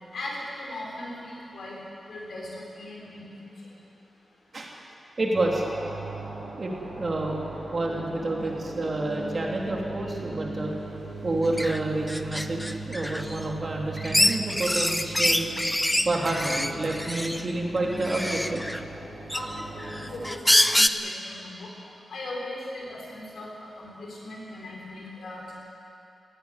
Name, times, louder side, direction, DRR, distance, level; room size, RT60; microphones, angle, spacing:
voice 1, 0.1-1.8 2.1-3.3 19.3-19.6 20.0-21.7 22.1-25.5, left 1 dB, 70° left, -3 dB, 6.4 m, -38 dB
voice 2, 5.2-5.6 6.6-6.7 7.0-7.4 7.7-10.7 11.2-15.5 16.0-18.6, right 2 dB, 35° right, -1 dB, 3.1 m, -28 dB
sound 1, 5.3-20.3, right 2 dB, 60° right, 5.5 m, -39 dB
Feeding Frenzy, 11.6-11.8 12.1-13.4 14.0-17.4 18.0-18.8 19.3-20.9, left 1 dB, 5° left, 0.7 m, -25 dB
19.0 x 16.5 x 9.8 m, 2.6 s
wide cardioid pair, 160°, 0 cm